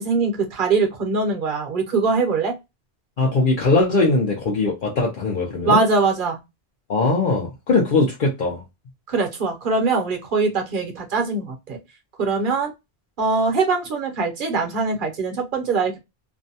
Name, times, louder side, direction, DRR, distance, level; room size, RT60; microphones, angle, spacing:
voice 1, 0.0-2.6 5.6-6.4 9.1-11.8 12.2-12.7 13.2-16.0, right 4 dB, 55° right, 0.8 m, -22 dB
voice 2, 3.2-5.8 6.9-8.6, left 3 dB, 55° left, 0.8 m, -20 dB
2.6 x 2.1 x 2.6 m
omnidirectional pair, 1.1 m